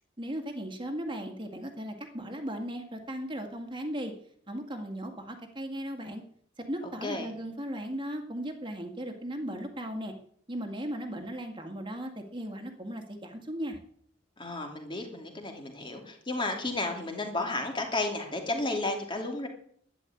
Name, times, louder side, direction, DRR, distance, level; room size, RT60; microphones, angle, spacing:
voice 1, 0.2-4.1 4.5-6.2 6.6-10.1 10.5-13.8, equal, 25° right, 5 dB, 2.1 m, -37 dB
voice 2, 14.4-19.5, left 2 dB, 25° left, 3 dB, 2.7 m, -32 dB
12.0 x 10.5 x 8.5 m, 0.62 s
head